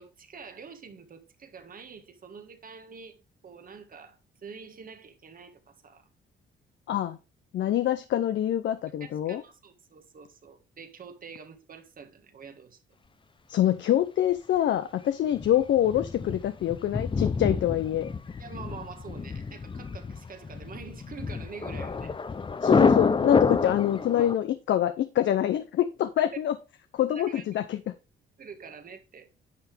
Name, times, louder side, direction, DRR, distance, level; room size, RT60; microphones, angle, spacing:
voice 1, 0.0-6.1 9.0-12.8 18.4-22.1 26.2-26.3 27.1-27.7 28.4-29.3, right 5 dB, 45° right, 1.8 m, -46 dB
voice 2, 6.9-7.2 7.5-9.4 13.5-18.1 22.6-26.5 26.9-27.8, left 11 dB, 70° left, 0.7 m, -25 dB
Thunder, 15.3-24.3, left 4 dB, 25° left, 0.7 m, -28 dB
10.5 x 5.9 x 3.4 m
cardioid pair, 90°, 20 cm